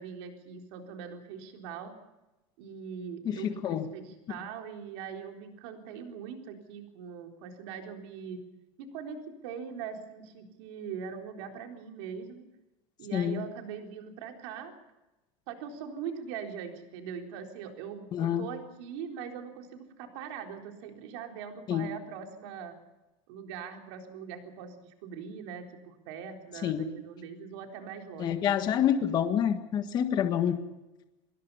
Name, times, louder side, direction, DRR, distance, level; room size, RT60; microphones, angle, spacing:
voice 1, 0.0-1.9 2.6-8.4 8.8-9.2 9.4-12.4 13.0-14.7 15.5-22.8 23.3-28.7, right 7 dB, 60° right, 3 dB, 4.1 m, -41 dB
voice 2, 3.2-3.9 13.1-13.4 18.1-18.5 21.7-21.9 26.6-26.9 28.2-30.6, left 9 dB, 25° left, 8 dB, 1.6 m, -27 dB
25.0 x 22.0 x 5.7 m, 1.0 s
supercardioid pair, 175°, 16 cm